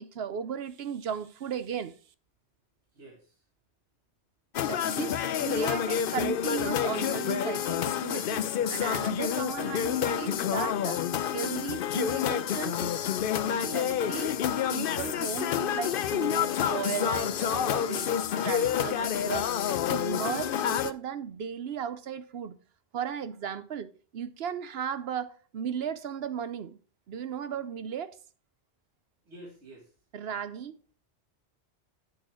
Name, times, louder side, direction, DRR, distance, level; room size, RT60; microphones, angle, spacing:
voice 1, 0.0-2.0 4.7-8.4 8.7-11.0 11.3-12.9 13.4-14.4 14.7-19.5 19.9-22.6 22.9-26.8 27.1-28.2 30.1-30.8, right 8 dB, 65° right, 0.9 m, -36 dB
voice 2, 2.9-3.5 29.3-30.0, right 1 dB, 85° right, 2.3 m, -50 dB
sound 1, 4.5-20.9, left 9 dB, 60° left, 0.7 m, -28 dB
8.9 x 6.4 x 4.8 m
omnidirectional pair, 1.1 m